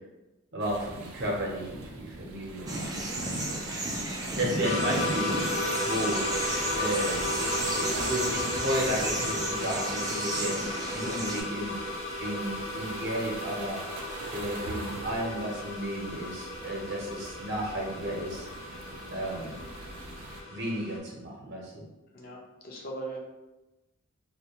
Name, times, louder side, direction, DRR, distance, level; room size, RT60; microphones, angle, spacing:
voice 1, 0.5-3.6 4.3-5.5 5.8-6.3 6.7-7.3 7.8-11.8 12.2-13.8 14.3-18.5 19.1-19.6 20.5-21.8, equal, 55° right, -3 dB, 0.7 m, -33 dB
sound 1, 0.6-20.4, right 2 dB, 90° right, 0.4 m, -44 dB
sound 2, 2.7-11.4, right 2 dB, 20° right, 0.3 m, -33 dB
sound 3, 4.6-21.0, left 2 dB, 75° left, 0.8 m, -34 dB
voice 2, 22.1-23.2, right 2 dB, 45° left, -1 dB, 0.5 m, -40 dB
2.3 x 2.2 x 2.9 m, 1.0 s
head